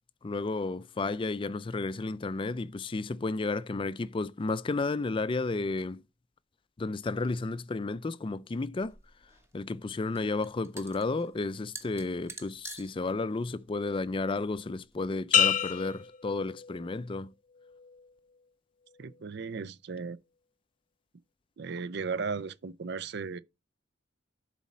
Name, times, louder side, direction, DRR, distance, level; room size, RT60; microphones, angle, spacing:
voice 1, 0.2-6.0 6.8-9.0 9.5-17.3, left 3 dB, 25° left, 0.4 m, -32 dB
sound 1, 8.8-15.0, right 3 dB, 15° right, 1.1 m, -49 dB
sound 2, 15.3-17.1 17.6-18.1, left 8 dB, 40° left, 0.8 m, -28 dB
voice 2, 19.0-20.2 21.6-23.4, right 5 dB, 60° right, 0.5 m, -36 dB
11.0 x 4.2 x 4.2 m
head